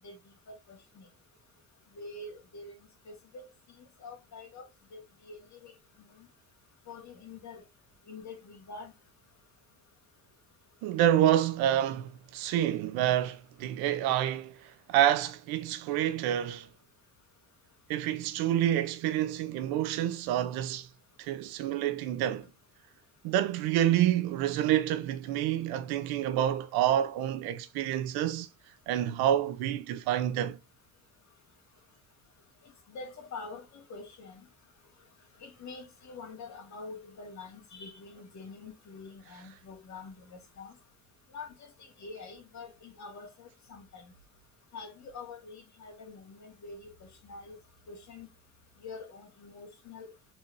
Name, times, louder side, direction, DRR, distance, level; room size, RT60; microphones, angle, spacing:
voice 1, 0.5-1.1 1.9-2.7 3.1-3.5 4.0-4.7 4.9-5.7 6.9-7.6 8.1-8.9 32.9-34.4 35.4-40.7 41.3-44.1 44.7-47.6 47.9-48.3 48.8-50.1, left 3 dB, 50° left, 1.7 m, -46 dB
voice 2, 10.8-16.7 17.9-20.9 21.2-22.5 23.2-28.5 28.9-30.6, right 11 dB, 85° right, 0.7 m, -28 dB
4.3 x 3.4 x 2.5 m
cardioid pair, 95°, 36 cm